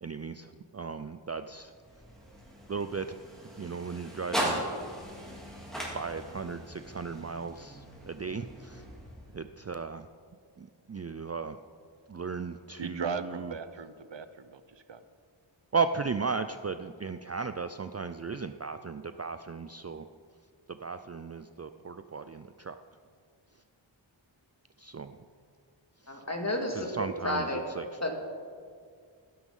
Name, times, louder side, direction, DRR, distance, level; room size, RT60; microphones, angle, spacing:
voice 1, 0.0-1.7 2.7-3.1 3.6-4.6 5.9-8.8 9.3-10.1 10.6-11.6 12.1-13.6 15.7-20.1 20.7-22.8 24.8-25.2 26.0-26.2 26.7-28.0, right 5 dB, 35° right, 10 dB, 0.5 m, -36 dB
sound 1, 1.3-9.6, equal, ahead, 4.6 m, -39 dB
voice 2, 12.8-15.0, right 5 dB, 65° right, 11 dB, 0.9 m, -38 dB
voice 3, 26.1-26.9 27.2-27.6 28.0-28.1, left 1 dB, 35° left, 3 dB, 2.3 m, -31 dB
16.0 x 12.5 x 5.5 m, 2.1 s
wide cardioid pair, 65°, 47 cm